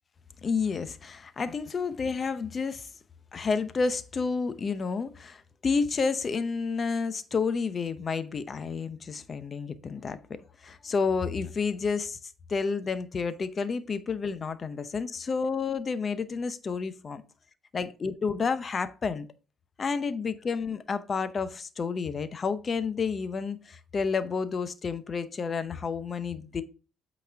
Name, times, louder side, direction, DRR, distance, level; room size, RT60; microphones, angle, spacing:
voice 1, 0.4-2.9 3.3-12.2 12.5-17.2 17.7-19.3 19.8-26.6, left 5 dB, 40° left, 0.7 m, -30 dB
8.2 x 4.2 x 3.4 m
supercardioid pair, 65°, 0 cm